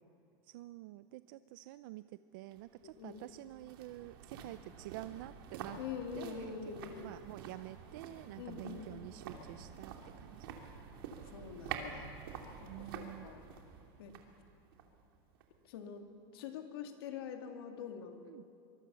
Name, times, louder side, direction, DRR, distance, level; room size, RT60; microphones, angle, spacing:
voice 1, 0.4-5.8 6.1-6.6 7.0-10.5 12.7-13.3 18.3-18.4, right 16 dB, 60° right, 13 dB, 0.5 m, -48 dB
sound 1, 2.5-15.7 16.0-16.1, right 7 dB, 75° right, 2.8 m, -49 dB
voice 2, 2.8-3.3 5.8-7.2 8.4-9.1 11.3-12.2 12.6-13.5 14.0-14.1 15.6-18.2, left 7 dB, 85° left, 4 dB, 2.5 m, -45 dB
24.5 x 23.0 x 7.0 m, 2.5 s
supercardioid pair, 170°, 12 cm